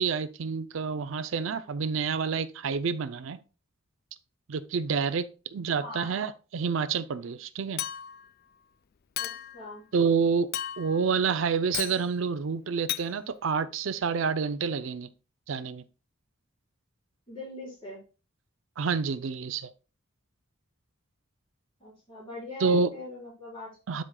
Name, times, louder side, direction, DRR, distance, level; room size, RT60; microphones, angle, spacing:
voice 1, 0.0-3.4 4.5-7.8 9.9-10.5 10.8-15.1 15.5-15.8 18.8-19.7 22.6-22.9 23.9-24.0, right 5 dB, 65° right, 0.5 m, -28 dB
voice 2, 5.7-6.1 9.2-9.8 17.3-18.0 21.8-23.7, left 2 dB, 25° left, 4.3 m, -41 dB
Chink clink, 7.8-8.3 9.2-9.6 10.5-11.0 11.7-12.0 12.9-13.1, left 12 dB, 45° left, 0.3 m, -34 dB
12.0 x 5.1 x 2.2 m
head